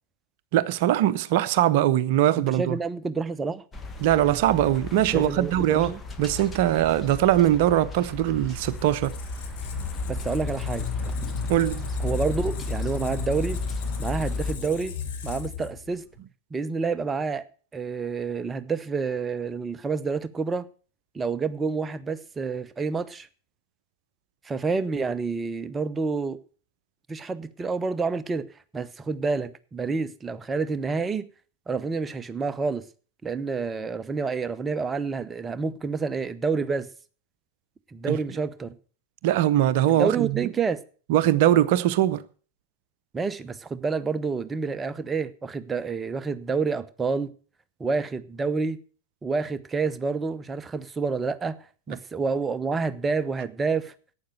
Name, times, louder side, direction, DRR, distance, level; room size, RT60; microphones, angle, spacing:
voice 1, 0.5-2.8 4.0-9.1 11.5-11.8 38.1-38.2 39.2-40.4 41.1-42.2, right 12 dB, 50° right, 0.7 m, -21 dB
voice 2, 2.4-3.6 5.1-6.0 10.1-10.9 12.0-13.6 14.0-14.9 15.2-16.0 16.5-17.4 17.7-20.7 21.1-23.3 24.4-26.4 27.1-28.5 28.7-31.3 31.7-32.8 33.2-36.9 37.9-38.7 39.9-40.8 43.1-47.3 47.8-48.8 49.2-51.6 51.9-53.9, right 4 dB, 15° right, 0.8 m, -28 dB
sound 1, 3.7-14.6, left 2 dB, 15° left, 1.4 m, -34 dB
Squeak, 8.4-16.2, left 8 dB, 50° left, 2.0 m, -36 dB
11.5 x 8.9 x 6.8 m
figure-of-eight pair, 90°, 0 cm